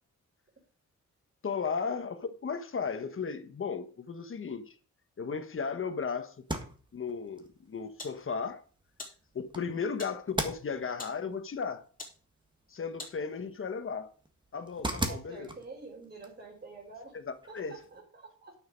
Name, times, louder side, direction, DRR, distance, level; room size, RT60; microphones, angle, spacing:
voice 1, 1.4-4.8 5.2-6.4 6.9-8.6 9.3-11.8 12.7-14.1 14.5-15.5 17.3-17.7, left 5 dB, 45° left, 1.2 m, -35 dB
sound 1, 6.3-18.0, right 1 dB, 15° right, 1.6 m, -42 dB
sound 2, 7.4-13.7, left 3 dB, 30° left, 3.4 m, -51 dB
voice 2, 15.1-17.2 17.5-18.5, right 3 dB, 35° right, 3.8 m, -48 dB
10.5 x 6.5 x 5.2 m
wide cardioid pair, 125°, 30 cm